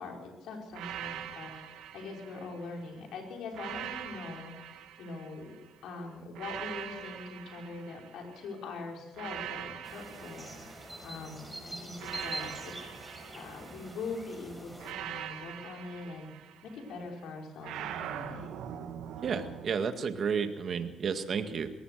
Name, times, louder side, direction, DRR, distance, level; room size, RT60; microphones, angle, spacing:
voice 1, 0.0-4.7 5.0-5.5 5.8-12.7 13.3-16.3 16.6-18.5, left 3 dB, 80° left, 1 dB, 5.4 m, -43 dB
sound 1, 0.7-2.9 3.5-5.7 6.3-8.5 9.1-11.3 12.0-14.1 14.8-17.0 17.6-19.7, right 10 dB, 90° right, 1.8 m, -43 dB
sound 2, 9.8-14.9, right 1 dB, 10° right, 6.2 m, -44 dB
voice 2, 19.2-21.7, right 6 dB, 55° right, 8 dB, 1.9 m, -32 dB
22.0 x 18.0 x 6.7 m, 1.0 s
cardioid pair, 90°, 0 cm